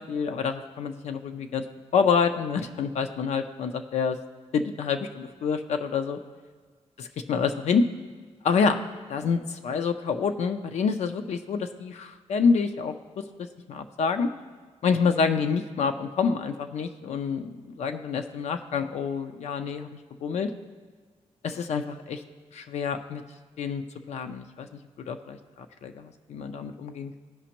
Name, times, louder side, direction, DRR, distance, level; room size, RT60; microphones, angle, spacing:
voice 1, 0.0-1.6 1.9-4.2 4.5-6.2 7.0-7.8 8.4-8.8 9.1-13.3 13.7-14.3 14.8-19.9 20.2-20.5 21.4-22.2 22.5-23.2 23.6-24.7 25.0-27.2, left 5 dB, 75° left, 7 dB, 0.4 m, -27 dB
15.0 x 5.0 x 2.9 m, 1.5 s
wide cardioid pair, 140°, 12 cm